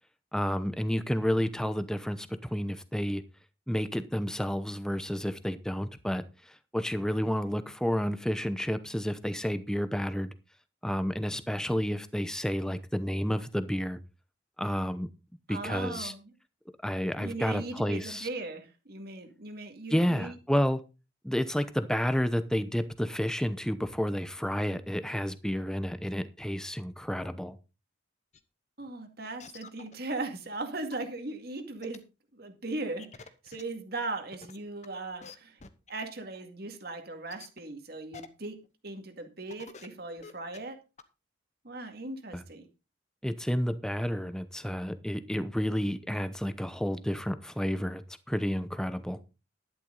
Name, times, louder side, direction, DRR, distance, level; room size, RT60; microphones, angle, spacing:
voice 1, 0.3-3.2 3.7-10.3 10.8-14.0 14.6-15.1 15.5-16.1 16.8-18.3 19.9-20.8 21.2-27.6 42.3-42.4 43.2-49.2, equal, 5° left, 0.8 m, -30 dB
voice 2, 15.5-16.3 17.2-20.3 28.8-32.0 32.3-35.6 35.9-38.6 38.8-40.8 41.6-42.7, right 2 dB, 55° right, 2.1 m, -38 dB
sound 1, 28.3-28.4 28.9-29.0 29.4-29.9 30.6-30.7 30.9-31.0 31.8-32.0 33.0-33.6 34.3-34.9 35.2-35.3 35.6-35.9 36.3-36.4 37.3-37.6 38.1-38.3 38.6-38.7 39.2-39.3 39.5-39.9 40.2-40.6 41.0-41.1, left 5 dB, 40° left, 1.0 m, -47 dB
11.5 x 10.5 x 3.9 m
head